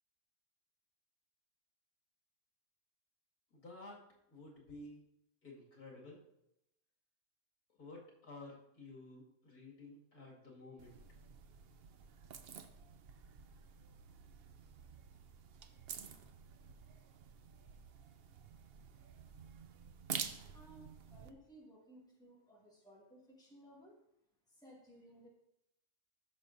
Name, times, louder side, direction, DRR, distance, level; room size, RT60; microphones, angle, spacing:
voice 1, 3.5-4.0 4.3-5.1 5.4-6.2 7.8-11.2, left 2 dB, 80° left, -3 dB, 2.6 m, -53 dB
sound 1, 10.8-21.3, right 7 dB, 60° right, 0.6 m, -49 dB
voice 2, 20.5-24.0 24.5-25.3, right 1 dB, 5° left, -4 dB, 2.0 m, -59 dB
14.5 x 6.6 x 2.6 m, 0.82 s
omnidirectional pair, 1.6 m